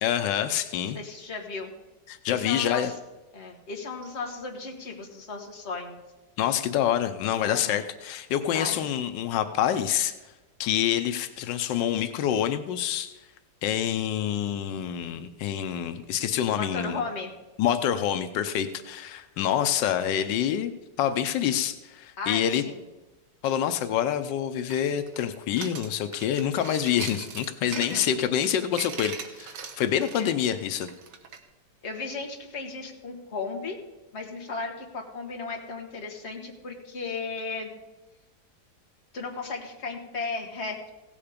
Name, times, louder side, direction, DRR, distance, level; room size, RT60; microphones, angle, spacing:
voice 1, 0.0-1.0 2.1-2.9 6.4-10.1 10.6-13.2 13.6-17.0 17.6-20.7 21.0-22.6 23.4-30.9, left 10 dB, 90° left, 10 dB, 1.4 m, -27 dB
voice 2, 0.9-1.7 2.3-2.9 3.3-6.0 7.4-7.8 8.5-8.8 16.5-17.3 22.2-22.8 27.6-28.0 30.2-30.3 31.8-33.8 34.1-37.7 39.1-40.9, left 4 dB, 40° left, 2 dB, 1.7 m, -35 dB
sound 1, 24.7-31.4, right 6 dB, 80° right, 1.7 m, -40 dB
16.5 x 7.2 x 5.0 m, 1.1 s
omnidirectional pair, 1.9 m